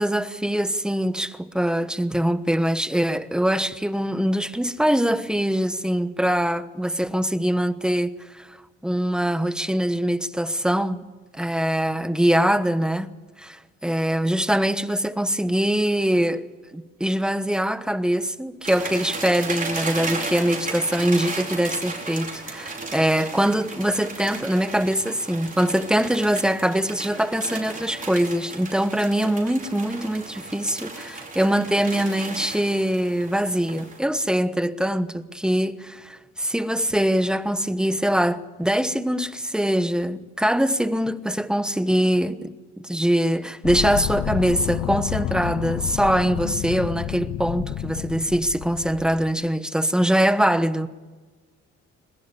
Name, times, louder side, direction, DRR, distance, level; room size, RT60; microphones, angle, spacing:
voice 1, 0.0-8.6 8.8-11.0 11.3-13.1 13.4-16.5 16.7-50.9, equal, 5° right, 1.1 m, -23 dB
sound 1, 18.6-34.0, right 3 dB, 25° right, 5.1 m, -34 dB
sound 2, 43.6-49.5, left 13 dB, 65° left, 0.6 m, -30 dB
21.5 x 21.0 x 7.1 m
cardioid pair, 90°, 30 cm